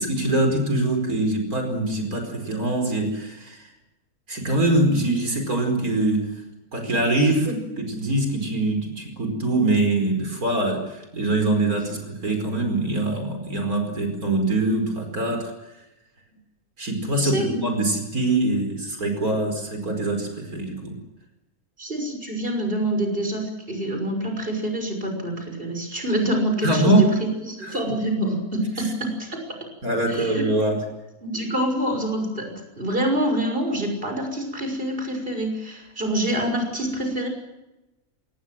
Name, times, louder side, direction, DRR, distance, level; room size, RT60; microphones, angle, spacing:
voice 1, 0.0-3.7 4.3-6.3 6.7-15.7 16.8-21.0 26.6-27.1 27.6-27.8 28.8-28.9 29.8-30.8, right 2 dB, 80° right, 4 dB, 5.3 m, -23 dB
voice 2, 17.2-17.5 21.8-27.1 27.4-29.4 30.1-30.4 31.2-37.3, right 1 dB, 40° right, 4 dB, 6.3 m, -26 dB
26.0 x 20.0 x 7.5 m, 0.99 s
omnidirectional pair, 1.5 m